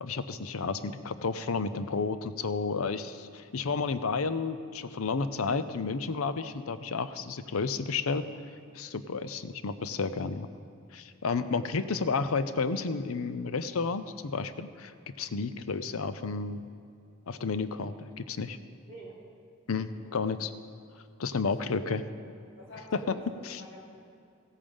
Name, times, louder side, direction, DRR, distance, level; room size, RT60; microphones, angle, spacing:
voice 1, 0.0-8.2 8.7-10.5 10.9-16.6 17.3-18.6 19.7-20.5 21.2-22.0 22.9-23.2 23.4-23.6, left 4 dB, 90° left, 12 dB, 0.6 m, -31 dB
voice 2, 11.3-11.7 18.9-19.2 20.0-20.1 21.5-22.0 22.6-23.4 23.7-23.8, right 1 dB, 65° left, -4 dB, 3.3 m, -48 dB
16.0 x 8.7 x 5.4 m, 2.5 s
head